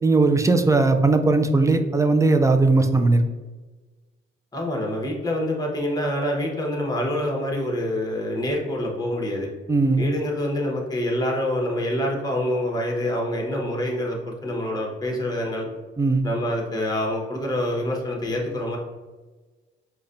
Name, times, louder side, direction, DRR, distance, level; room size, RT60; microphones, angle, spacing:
voice 1, 0.0-3.2 9.7-10.0 16.0-16.2, right 3 dB, 15° right, 7 dB, 0.3 m, -18 dB
voice 2, 4.5-9.5 10.0-15.7 16.2-18.8, left 1 dB, 20° left, -1 dB, 1.0 m, -26 dB
5.0 x 2.2 x 2.5 m, 1.3 s
cardioid pair, 80°, 21 cm